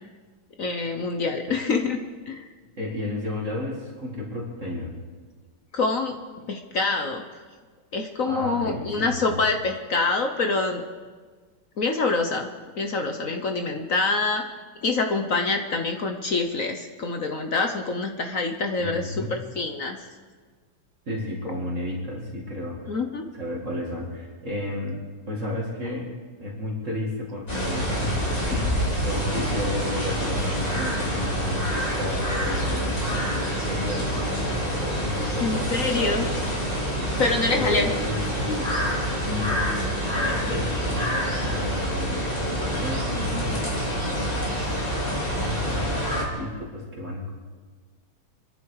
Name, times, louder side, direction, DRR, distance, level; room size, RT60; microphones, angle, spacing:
voice 1, 0.6-2.0 2.3-2.4 5.7-6.2 6.5-7.2 7.9-10.8 11.8-12.5 12.8-14.4 14.8-20.0 22.9-23.2 35.4-36.2 37.2-38.0, left 3 dB, 50° left, 4 dB, 1.3 m, -25 dB
voice 2, 2.8-4.9 8.3-9.3 18.8-19.3 21.1-23.0 23.3-25.0 25.3-26.1 26.4-33.3 33.6-36.4 37.5-39.0 39.3-39.8 40.2-42.3 42.6-44.5 45.4-47.3, left 1 dB, 40° right, -3 dB, 2.6 m, -32 dB
sound 1, 27.5-46.2, equal, 20° left, 3.5 m, -27 dB
25.5 x 11.0 x 4.8 m, 1.5 s
omnidirectional pair, 2.1 m